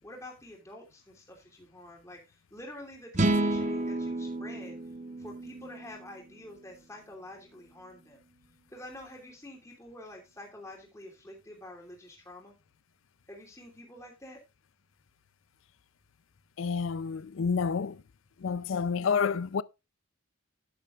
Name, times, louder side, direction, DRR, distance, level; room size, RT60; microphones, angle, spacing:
voice 1, 0.0-4.8 5.2-8.2 8.7-12.5 13.3-14.4, left 1 dB, 15° left, 2.8 m, -48 dB
sound 1, 3.1-6.5, right 2 dB, 35° right, 1.0 m, -30 dB
voice 2, 16.6-18.0 18.4-19.6, left 5 dB, 70° left, 0.5 m, -29 dB
12.0 x 10.0 x 2.4 m
head